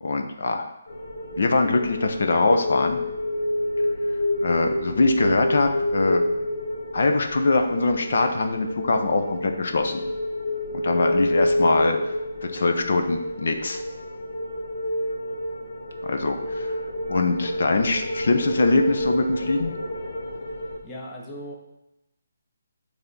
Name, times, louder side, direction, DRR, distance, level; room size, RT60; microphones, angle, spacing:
voice 1, 0.0-0.6 1.4-3.0 4.4-6.2 6.9-10.0 10.7-12.0 12.4-13.8 16.0-16.8 17.1-19.7, left 3 dB, 45° left, 5 dB, 0.6 m, -23 dB
sound 1, 0.9-20.8, left 1 dB, 65° left, 1.3 m, -28 dB
voice 2, 20.8-21.5, equal, 10° left, -3 dB, 0.7 m, -37 dB
8.2 x 3.5 x 5.4 m, 0.90 s
hypercardioid pair, 180°, 0 cm